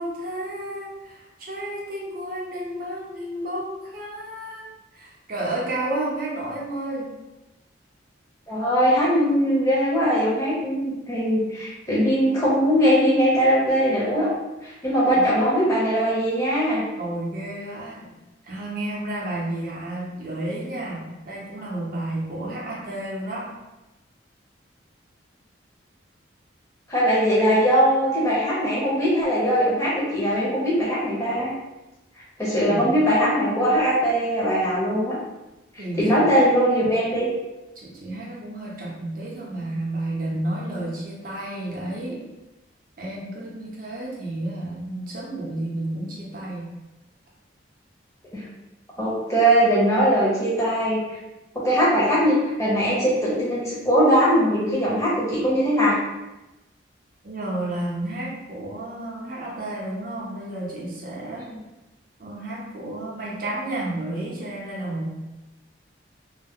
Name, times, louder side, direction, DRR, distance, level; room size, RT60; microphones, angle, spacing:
voice 1, 0.0-4.7 4.9-7.1 15.1-15.3 17.0-18.1 18.4-23.5 32.7-32.9 35.8-36.5 37.8-42.3 43.0-46.7 57.2-61.5 62.2-65.1, right 1 dB, 45° right, -4 dB, 0.6 m, -31 dB
voice 2, 8.5-14.3 14.6-16.8 26.9-31.5 32.4-35.2 36.0-37.3 48.3-48.4 49.0-51.2 51.6-56.0, equal, 15° left, -8 dB, 0.8 m, -21 dB
2.3 x 2.0 x 3.5 m, 1.0 s
head